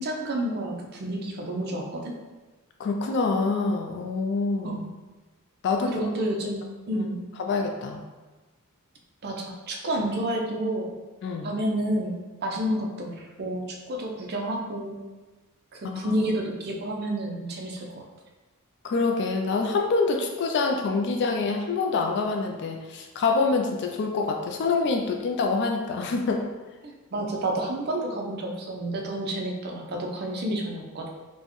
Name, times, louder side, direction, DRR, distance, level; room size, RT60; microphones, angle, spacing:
voice 1, 0.0-2.2 4.6-4.8 5.9-7.2 9.2-10.9 11.4-12.1 12.4-15.0 15.7-18.0 26.8-31.1, right 1 dB, 50° right, 0 dB, 0.5 m, -30 dB
voice 2, 2.8-4.8 5.6-6.1 6.9-7.1 7.4-8.0 11.2-11.5 15.8-16.1 18.8-26.4, left 4 dB, 55° left, 2 dB, 0.3 m, -26 dB
4.3 x 2.1 x 3.0 m, 1.2 s
head